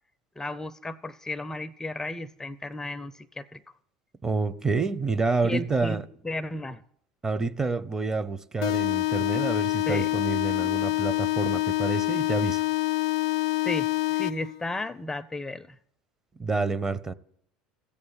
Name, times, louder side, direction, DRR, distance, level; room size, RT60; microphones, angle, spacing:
voice 1, 0.4-3.6 5.4-6.8 9.9-10.1 13.6-15.8, left 2 dB, 15° left, 0.5 m, -34 dB
voice 2, 4.2-6.0 7.2-12.6 16.4-17.1, right 4 dB, 20° right, 0.8 m, -28 dB
sound 1, 8.6-14.6, left 18 dB, 65° left, 0.5 m, -26 dB
14.5 x 8.5 x 9.7 m
figure-of-eight pair, 70°, 3 cm